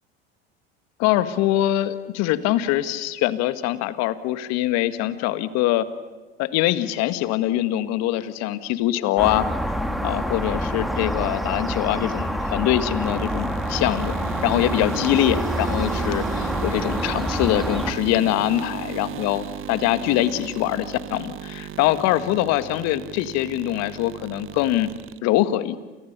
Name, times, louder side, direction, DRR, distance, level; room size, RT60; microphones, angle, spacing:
voice 1, 1.0-5.8 6.4-9.5 10.0-14.1 14.4-24.9 25.2-25.8, left 14 dB, 60° left, 12 dB, 1.8 m, -23 dB
sound 1, 9.2-17.9, equal, ahead, 2.5 m, -27 dB
sound 2, 13.0-25.2, right 11 dB, 45° right, 1.1 m, -35 dB
29.5 x 28.0 x 6.9 m, 1.2 s
hypercardioid pair, 80°, 30 cm